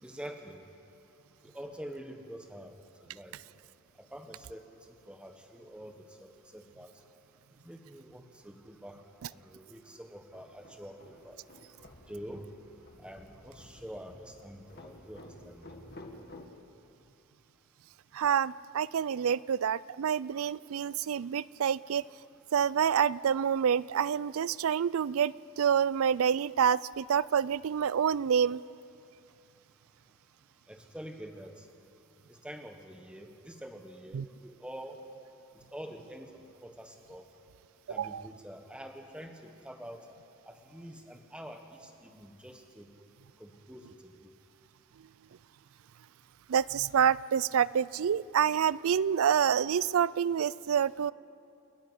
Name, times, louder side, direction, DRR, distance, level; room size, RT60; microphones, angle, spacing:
voice 1, 0.0-0.7 1.4-2.7 3.1-3.4 4.0-4.8 5.1-6.9 7.6-9.0 9.3-11.4 12.1-12.5 13.0-15.6 30.7-31.7 32.3-35.0 35.5-37.3 37.9-40.0 40.5-42.9 43.4-44.3, equal, 5° right, 4 dB, 1.3 m, -46 dB
sound 1, 9.9-16.5, left 1 dB, 45° left, 1.7 m, -53 dB
voice 2, 18.1-22.1 22.5-28.6 34.1-34.2 38.0-38.2 46.5-51.1, right 8 dB, 75° right, 20 dB, 0.4 m, -27 dB
29.0 x 10.5 x 9.8 m, 2.7 s
head